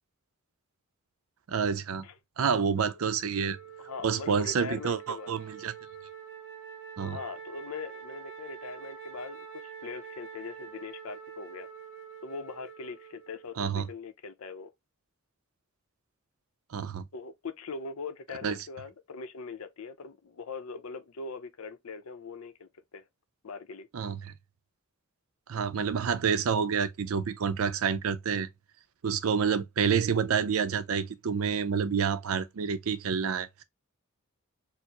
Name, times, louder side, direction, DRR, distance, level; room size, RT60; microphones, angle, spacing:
voice 1, 1.5-2.0 2.4-3.6 4.0-5.7 7.0-7.2 13.6-13.9 16.7-17.1 18.4-18.6 23.9-24.3 25.5-28.5 29.0-33.6, right 6 dB, 75° right, 0.5 m, -28 dB
Wind instrument woodwind instrument, 3.4-13.7, right 7 dB, 60° left, 1.2 m, -46 dB
voice 2, 3.5-5.3 7.1-11.7 12.2-14.7 17.1-23.0 23.4-23.9, left 4 dB, 80° left, 0.6 m, -41 dB
4.4 x 2.0 x 2.8 m
head